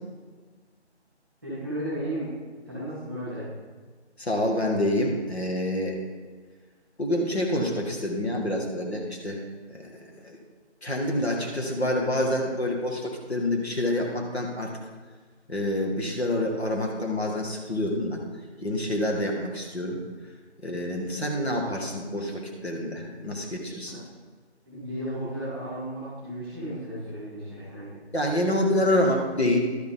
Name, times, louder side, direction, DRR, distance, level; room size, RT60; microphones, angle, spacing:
voice 1, 1.4-2.3 2.7-3.4 23.9-24.0 24.7-28.0 28.8-28.9, right 1 dB, ahead, -12 dB, 2.7 m, -34 dB
voice 2, 4.2-6.0 7.0-9.4 9.7-10.4 10.8-14.7 15.5-18.2 18.6-20.0 20.6-24.0 28.1-29.6, left 1 dB, 65° left, 0 dB, 1.9 m, -27 dB
12.0 x 6.8 x 3.8 m, 1.4 s
figure-of-eight pair, 170°, 35 cm